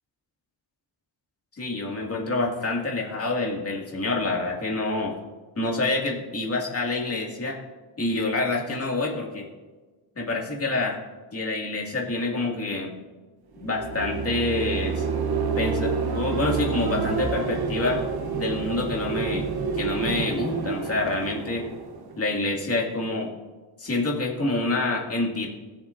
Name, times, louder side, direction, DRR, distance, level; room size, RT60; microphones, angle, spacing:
voice 1, 1.6-5.2 5.6-7.6 8.0-9.5 10.2-11.0 11.3-13.0 13.6-15.1 15.6-18.0 18.3-21.7 22.2-23.3 23.8-25.5, left 2 dB, 30° left, -1 dB, 2.2 m, -27 dB
sound 1, 13.6-22.6, right 5 dB, 55° right, 1.1 m, -29 dB
20.0 x 7.0 x 2.6 m, 1.3 s
wide cardioid pair, 135°, 44 cm